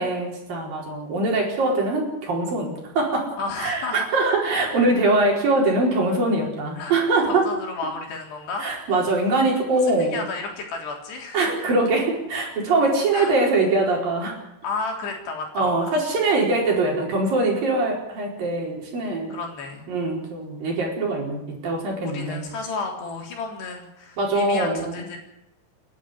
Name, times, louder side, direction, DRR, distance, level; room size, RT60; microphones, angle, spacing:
voice 1, 0.0-7.5 8.6-10.3 11.3-14.4 15.6-19.3 19.9-22.5 24.2-25.1, right 2 dB, 55° right, 0 dB, 6.2 m, -23 dB
voice 2, 3.4-4.2 6.8-7.0 7.3-9.0 10.0-11.4 13.1-13.3 14.6-15.9 19.3-19.8 22.0-25.2, left 4 dB, 70° left, 2 dB, 5.7 m, -32 dB
28.5 x 11.5 x 9.8 m, 0.84 s
omnidirectional pair, 5.0 m